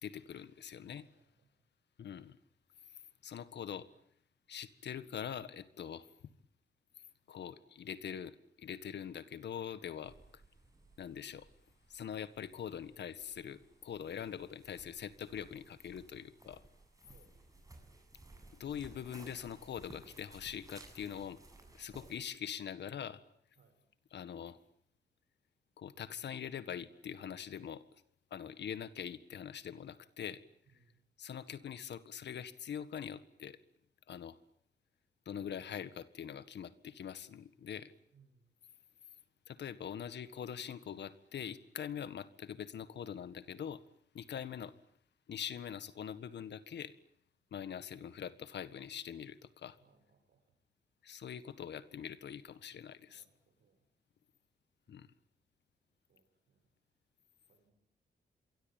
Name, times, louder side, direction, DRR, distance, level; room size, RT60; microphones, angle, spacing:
voice 1, 0.0-1.1 2.0-2.4 3.2-3.9 4.5-6.1 7.3-10.2 11.0-11.5 11.9-16.6 18.6-21.4 21.7-23.2 24.1-24.6 25.8-27.8 28.3-30.4 31.2-33.6 34.1-34.4 35.2-37.9 39.5-43.8 44.1-44.7 45.3-46.9 47.5-49.8 51.0-53.2 54.9-55.1, left 8 dB, 85° left, 13 dB, 1.7 m, -43 dB
voice 2, 0.9-1.5 17.0-17.3 23.6-23.8 30.7-31.0 38.1-38.5 49.8-50.5 53.1-53.8 54.9-55.2 56.1-56.6 57.5-57.7, right 5 dB, 80° right, 7 dB, 7.4 m, -69 dB
sound 1, 10.0-22.2, right 2 dB, 20° right, 7.6 m, -59 dB
27.5 x 23.5 x 9.1 m, 0.67 s
wide cardioid pair, 125°, 17 cm